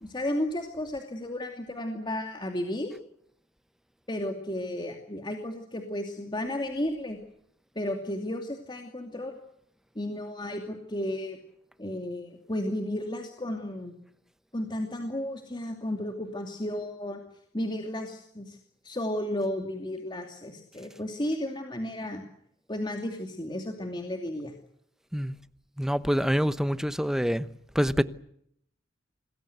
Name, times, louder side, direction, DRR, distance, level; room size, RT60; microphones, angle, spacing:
voice 1, 0.0-2.9 4.1-7.2 7.7-9.4 9.9-11.4 11.8-13.9 14.5-17.2 17.5-18.6 18.8-22.2 22.7-24.5, left 1 dB, 25° left, 2.6 m, -33 dB
voice 2, 25.8-27.5 27.7-28.0, equal, 5° right, 0.9 m, -26 dB
27.5 x 20.5 x 8.1 m
head